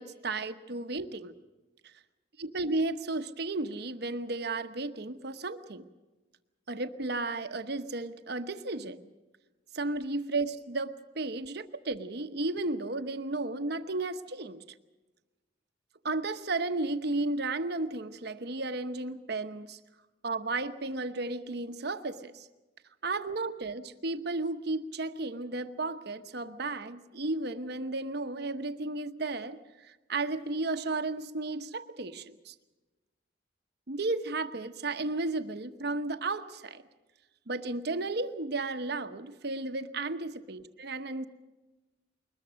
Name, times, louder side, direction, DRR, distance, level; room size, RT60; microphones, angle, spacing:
voice 1, 0.0-1.3 2.4-5.9 6.7-9.1 9.7-14.6 16.0-19.8 20.2-22.5 23.0-32.5 33.9-36.8 37.5-41.3, right 2 dB, 60° right, 9 dB, 1.0 m, -34 dB
22.0 x 20.5 x 6.3 m, 1.1 s
head